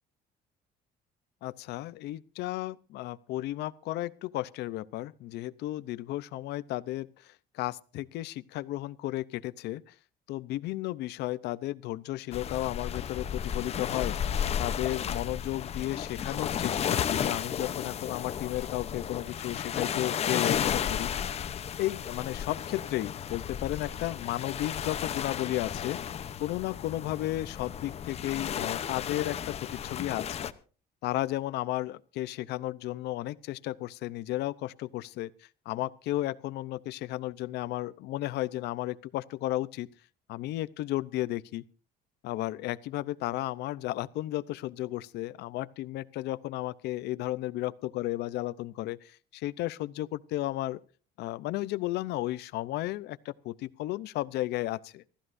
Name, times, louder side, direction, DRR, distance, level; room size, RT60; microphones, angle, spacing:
voice 1, 1.4-9.9 10.3-21.1 21.8-26.0 26.4-30.5 31.0-35.3 35.7-39.9 40.3-41.6 42.2-50.8 51.2-55.0, left 16 dB, 75° left, 0.7 m, -34 dB
sound 1, 12.3-30.5, left 8 dB, 40° left, 0.8 m, -33 dB
25.5 x 15.0 x 2.6 m
cardioid pair, 150°, 17 cm